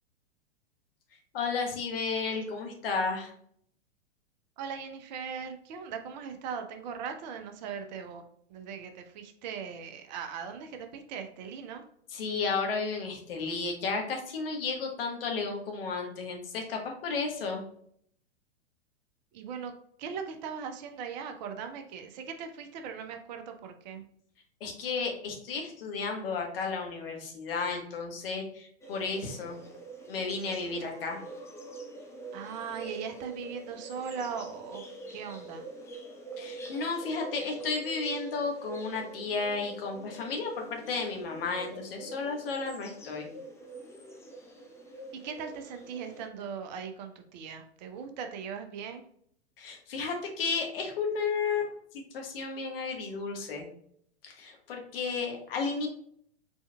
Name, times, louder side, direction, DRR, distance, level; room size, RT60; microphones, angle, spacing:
voice 1, 1.3-3.3 12.1-17.6 24.6-29.6 30.1-31.2 36.4-43.3 49.6-53.7 54.2-55.9, left 4 dB, 55° left, 2 dB, 1.4 m, -33 dB
voice 2, 4.6-8.2 8.5-11.8 19.3-19.7 20.0-24.0 32.3-34.8 35.1-35.6 45.2-49.0, right 6 dB, 40° right, 6 dB, 0.8 m, -39 dB
sound 1, 28.8-46.3, right 3 dB, 10° left, 0.6 m, -45 dB
4.4 x 4.3 x 2.2 m, 0.65 s
figure-of-eight pair, 105°, 34 cm